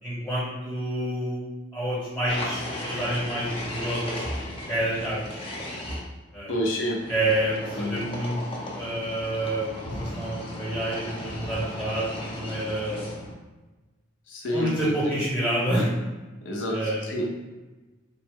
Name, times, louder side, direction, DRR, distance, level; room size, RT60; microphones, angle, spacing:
voice 1, 0.0-1.5 1.7-4.3 4.7-5.4 6.3-6.6 7.1-8.3 8.7-13.1 14.5-15.9 16.7-17.1, right 1 dB, 10° left, -9 dB, 0.9 m, -28 dB
sound 1, 2.3-6.0 7.0-13.4, left 1 dB, 30° left, 0.5 m, -35 dB
voice 2, 6.5-7.1 7.7-8.0 14.3-14.9 16.4-17.3, equal, 80° left, -1 dB, 0.6 m, -28 dB
3.3 x 2.0 x 3.4 m, 1.2 s
head